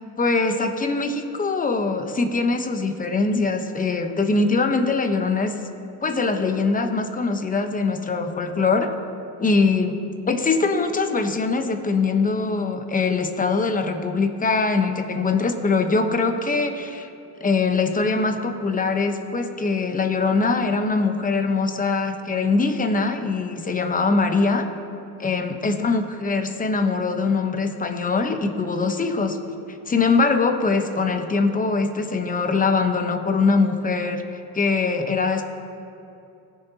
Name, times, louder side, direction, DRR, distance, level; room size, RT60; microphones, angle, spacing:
voice 1, 0.2-5.5 6.0-8.9 9.4-9.9 10.3-17.1 17.4-24.7 25.2-29.4 29.9-34.2 34.5-35.4, left 4 dB, 20° left, 6 dB, 1.0 m, -22 dB
19.5 x 7.0 x 2.9 m, 2.8 s
supercardioid pair, 105°, 41 cm